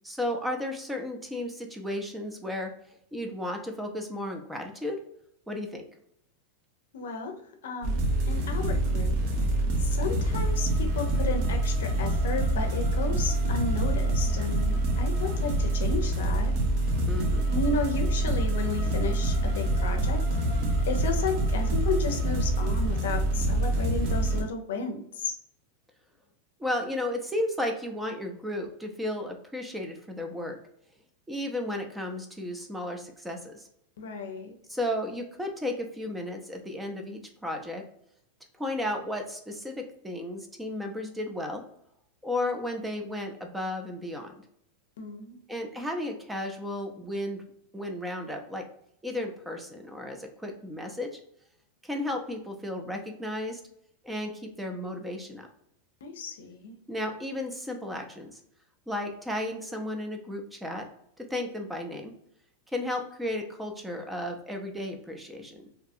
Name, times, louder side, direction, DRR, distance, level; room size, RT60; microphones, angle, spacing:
voice 1, 0.0-2.7 3.1-5.0 5.5-5.9 17.1-17.4 26.6-30.6 31.3-33.7 34.7-37.8 38.6-41.6 42.2-44.3 45.5-47.4 47.7-48.6 49.0-51.2 51.8-53.6 54.0-55.5 56.9-58.4 58.9-60.9 61.2-62.1 62.7-65.6, left 1 dB, 5° right, 4 dB, 0.5 m, -34 dB
voice 2, 6.9-7.4 7.6-8.0 8.3-16.5 17.5-20.2 20.9-25.4 34.0-34.6 45.0-45.4 56.0-56.7, left 3 dB, 85° left, 5 dB, 0.5 m, -33 dB
sound 1, 7.8-24.4, right 1 dB, 55° right, 0.7 m, -26 dB
2.7 x 2.2 x 2.6 m, 0.72 s
supercardioid pair, 125°, 0 cm